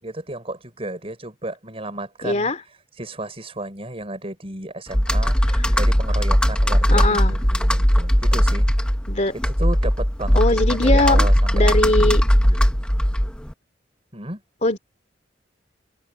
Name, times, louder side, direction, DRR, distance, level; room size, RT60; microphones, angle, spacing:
voice 1, 0.0-2.5 3.0-8.7 9.4-12.0 14.1-14.4, right 2 dB, 30° right, 5.9 m, -33 dB
voice 2, 2.2-2.6 6.9-7.4 9.1-9.3 10.3-11.3 11.5-12.2 14.6-14.8, left 2 dB, 40° left, 2.9 m, -20 dB
Computer keyboard, 4.9-13.5, equal, 5° left, 0.9 m, -18 dB
head